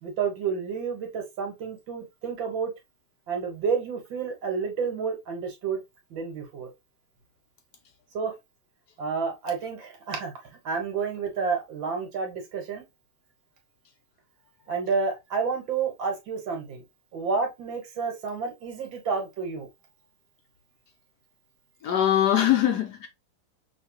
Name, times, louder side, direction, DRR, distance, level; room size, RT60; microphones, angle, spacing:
voice 1, 0.0-2.7 3.3-5.8 6.1-6.7 8.1-8.3 9.0-10.3 10.6-12.8 14.7-16.8 17.1-19.7, right 5 dB, 75° right, 2.1 m, -30 dB
voice 2, 21.8-23.1, left 11 dB, 65° left, 1.2 m, -22 dB
5.7 x 2.7 x 2.9 m
omnidirectional pair, 2.1 m